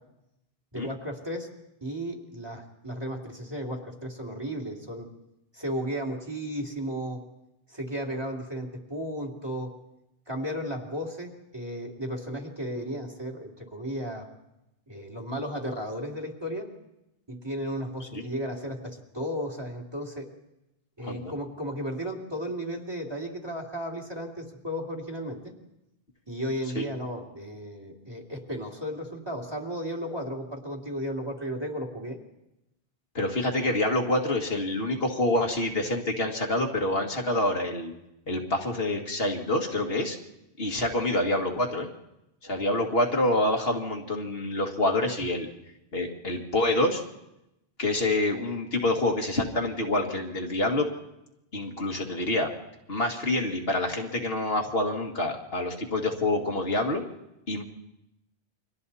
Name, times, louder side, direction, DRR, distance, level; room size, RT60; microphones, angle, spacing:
voice 1, 0.7-1.5 1.8-5.1 5.5-7.2 7.7-9.7 10.3-14.2 14.9-16.7 17.3-20.3 21.0-25.4 26.3-32.2, equal, 25° right, 1 dB, 3.1 m, -34 dB
voice 2, 33.1-37.9 38.3-40.2 40.6-41.9 42.4-45.5 45.9-47.0 47.8-50.9 51.5-52.5 52.9-57.0 57.5-57.6, left 1 dB, 65° left, 2 dB, 2.3 m, -27 dB
29.5 x 24.0 x 4.2 m, 0.91 s
omnidirectional pair, 1.1 m